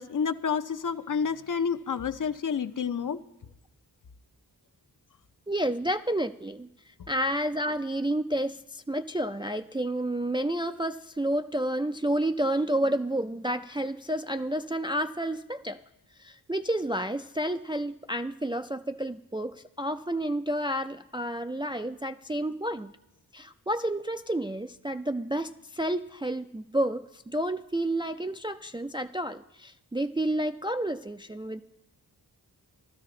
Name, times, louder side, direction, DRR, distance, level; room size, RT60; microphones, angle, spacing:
voice 1, 0.0-3.2, left 6 dB, 50° left, 10 dB, 0.6 m, -29 dB
voice 2, 5.5-6.7 7.1-15.8 16.2-22.9 23.3-31.6, right 1 dB, 15° right, 8 dB, 0.3 m, -30 dB
13.0 x 12.5 x 3.8 m, 0.88 s
cardioid pair, 45°, 41 cm